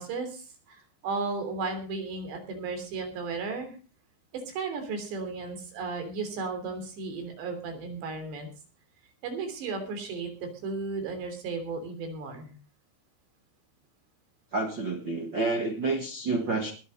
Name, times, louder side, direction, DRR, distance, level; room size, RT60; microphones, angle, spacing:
voice 1, 0.0-3.8 4.3-8.5 9.2-12.6, right 4 dB, 85° right, 6 dB, 5.5 m, -35 dB
voice 2, 14.5-16.7, right 3 dB, 70° right, 3 dB, 1.1 m, -29 dB
20.0 x 8.0 x 5.3 m, 0.36 s
omnidirectional pair, 4.9 m